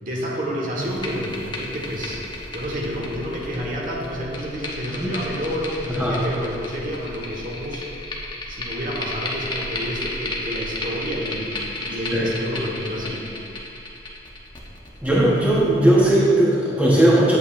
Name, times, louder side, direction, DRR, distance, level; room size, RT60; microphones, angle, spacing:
voice 1, 0.0-2.2 2.5-7.8 8.5-13.3, equal, 45° right, -3 dB, 1.3 m, -29 dB
sound 1, 0.8-16.1, left 2 dB, 25° left, 0.9 m, -33 dB
voice 2, 5.9-6.2 12.1-12.3 15.0-17.4, right 1 dB, 10° right, -7 dB, 0.9 m, -18 dB
9.2 x 8.1 x 2.5 m, 2.5 s
head